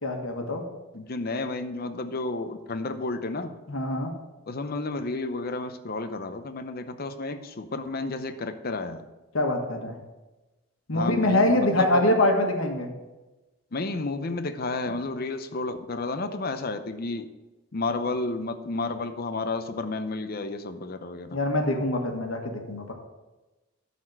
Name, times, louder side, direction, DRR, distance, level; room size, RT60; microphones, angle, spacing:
voice 1, 0.0-0.6 3.7-4.1 9.3-10.0 10.9-12.9 21.3-22.9, left 1 dB, 80° left, 3 dB, 1.5 m, -24 dB
voice 2, 0.9-3.6 4.5-9.0 10.9-12.1 13.7-17.3 17.7-21.4, left 3 dB, 45° left, 9 dB, 0.7 m, -31 dB
12.0 x 4.2 x 5.9 m, 1.1 s
head